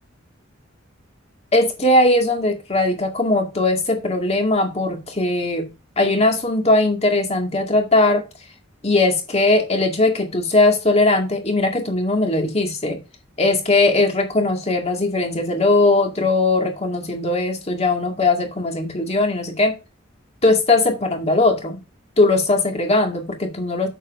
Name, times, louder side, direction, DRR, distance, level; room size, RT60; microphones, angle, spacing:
voice 1, 1.5-8.2 8.8-13.0 13.4-19.7 20.4-21.8 22.2-23.9, left 2 dB, 30° left, 2.1 m, -19 dB
8.3 x 7.5 x 2.6 m
head